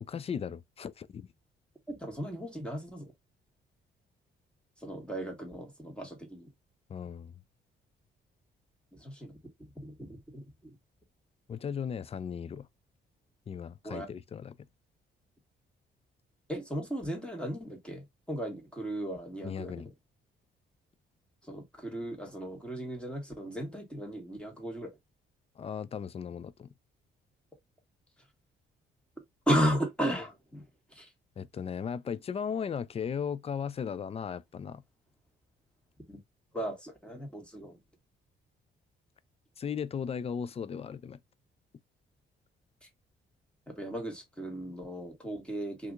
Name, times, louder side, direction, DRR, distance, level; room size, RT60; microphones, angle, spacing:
voice 1, 0.0-1.3 6.9-7.3 11.5-12.7 13.5-14.6 19.4-19.9 25.6-26.7 31.4-34.8 39.6-41.2, left 7 dB, 30° left, 0.4 m, -36 dB
voice 2, 1.9-3.1 4.8-6.5 9.0-9.4 9.8-10.4 13.8-14.1 16.5-19.7 21.5-24.9 29.5-30.6 31.0-31.1 36.1-36.2 36.5-37.8 43.8-45.9, equal, 5° left, 1.5 m, -35 dB
2.7 x 2.5 x 3.7 m
cardioid pair, 90°, 20 cm